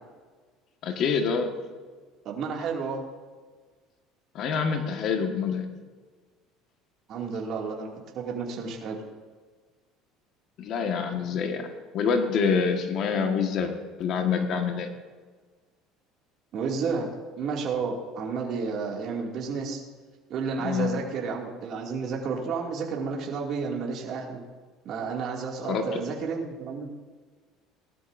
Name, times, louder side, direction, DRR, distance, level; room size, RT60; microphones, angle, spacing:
voice 1, 0.8-1.6 4.3-5.7 10.6-13.7 14.0-14.9 20.6-20.9 25.6-26.0, left 6 dB, 55° left, 4 dB, 1.5 m, -26 dB
voice 2, 2.2-3.0 7.1-7.9 8.1-9.0 16.5-19.8 20.3-24.4 24.8-26.9, right 5 dB, 50° right, -1 dB, 2.4 m, -31 dB
18.5 x 12.5 x 2.6 m, 1.4 s
cardioid pair, 120°, 0 cm